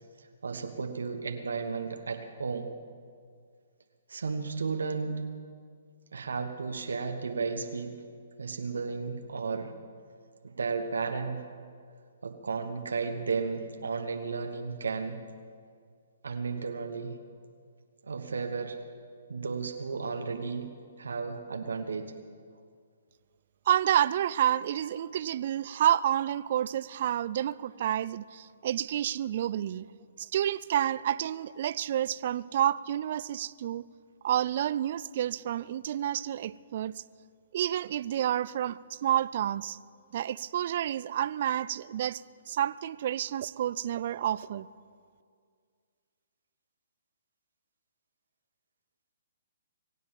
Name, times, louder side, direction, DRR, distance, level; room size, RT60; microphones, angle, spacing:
voice 1, 0.4-2.7 4.1-5.2 6.1-8.0 8.4-9.7 10.4-11.4 12.2-15.2 16.2-17.1 18.0-18.8 19.3-20.7 21.0-22.1, right 4 dB, 75° right, 5 dB, 1.3 m, -33 dB
voice 2, 23.7-29.9 30.2-33.8 34.2-37.0 37.5-39.8 40.1-42.2 42.5-44.7, right 11 dB, 50° right, 19 dB, 0.4 m, -29 dB
24.5 x 8.3 x 7.2 m, 2.1 s
hypercardioid pair, 130°, 0 cm